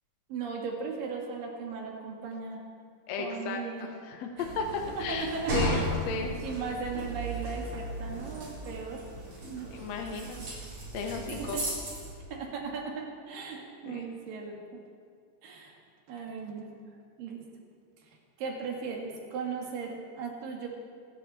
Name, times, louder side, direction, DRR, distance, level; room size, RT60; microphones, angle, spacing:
voice 1, 0.3-2.6 3.2-3.9 5.0-5.9 6.4-9.0 9.4-9.7 11.3-11.6 12.3-14.6 15.4-15.8 16.1-16.7 17.2-17.4 18.4-20.7, right 5 dB, 90° right, 0 dB, 3.7 m, -37 dB
voice 2, 3.1-5.3 5.5-6.3 9.7-10.4 10.9-11.6 13.9-14.0, left 4 dB, 65° left, 3 dB, 1.9 m, -35 dB
sound 1, 4.4-12.1, right 1 dB, 70° right, 5.8 m, -35 dB
25.5 x 10.5 x 4.3 m, 2.2 s
omnidirectional pair, 3.8 m